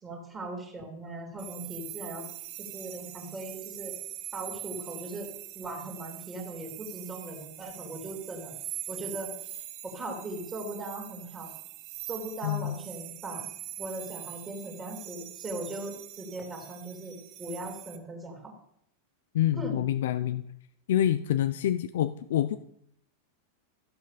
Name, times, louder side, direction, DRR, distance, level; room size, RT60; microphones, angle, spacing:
voice 1, 0.0-2.3 2.6-3.9 4.3-5.3 5.5-8.5 8.9-11.5 12.1-13.5 13.8-18.5 19.5-19.8, right 2 dB, 10° right, 1 dB, 3.3 m, -39 dB
sound 1, 1.4-18.0, right 13 dB, 35° right, 1.4 m, -43 dB
voice 2, 12.4-12.7 19.3-20.4 20.9-22.6, left 11 dB, 70° left, 12 dB, 0.6 m, -27 dB
15.5 x 8.3 x 6.8 m, 0.71 s
supercardioid pair, 170°, 0 cm